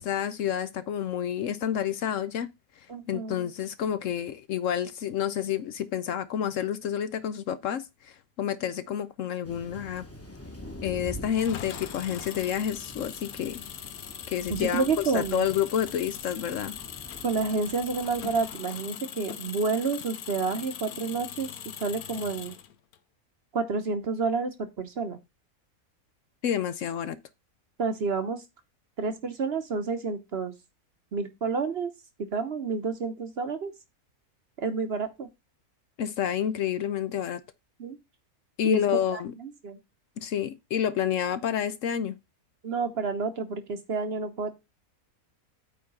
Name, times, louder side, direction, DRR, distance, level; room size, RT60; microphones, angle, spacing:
voice 1, 0.0-2.5 3.1-10.1 10.8-13.6 14.3-16.7 26.4-27.2 36.0-37.4 38.6-39.3 40.2-42.1, left 9 dB, 65° left, 0.9 m, -29 dB
voice 2, 2.9-3.4 14.5-15.5 17.2-21.5 21.8-22.5 23.5-25.2 27.8-28.4 29.0-30.5 31.1-31.9 32.3-33.7 34.6-35.3 37.8-38.0 38.6-38.8 39.1-39.8 42.6-44.6, right 4 dB, 50° right, 1.0 m, -29 dB
Thunder, 9.4-18.5, equal, 10° left, 1.0 m, -45 dB
Engine, 11.3-23.0, left 9 dB, 90° left, 1.2 m, -41 dB
8.6 x 3.5 x 5.4 m
omnidirectional pair, 1.5 m